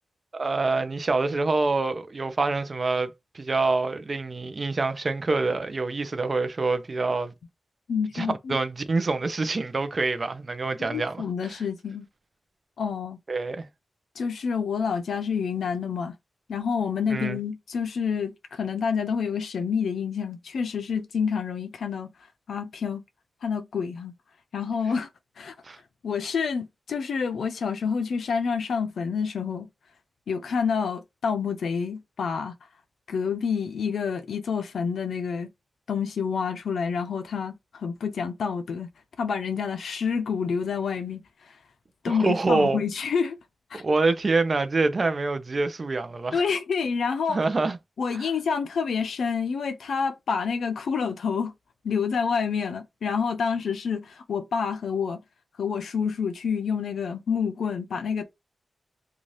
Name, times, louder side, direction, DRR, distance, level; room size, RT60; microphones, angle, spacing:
voice 1, 0.3-7.3 8.1-11.6 13.3-13.7 17.1-17.4 25.6-25.8 42.1-42.8 43.7-46.4 47.3-47.8 48.1-48.3, right 3 dB, 40° right, 0.5 m, -26 dB
voice 2, 7.9-8.6 10.8-12.1 12.8-13.2 14.2-16.1 16.5-22.1 22.5-23.0 23.4-24.1 24.5-25.1 25.4-25.5 26.0-29.7 30.3-32.5 33.1-35.5 35.9-38.9 39.2-41.2 41.5-41.6 42.0-43.4 43.7-43.8 46.3-47.4 48.0-51.5 51.8-55.2 55.6-58.3, left 6 dB, 90° left, 0.4 m, -28 dB
2.7 x 2.4 x 3.1 m
wide cardioid pair, 95°, 0 cm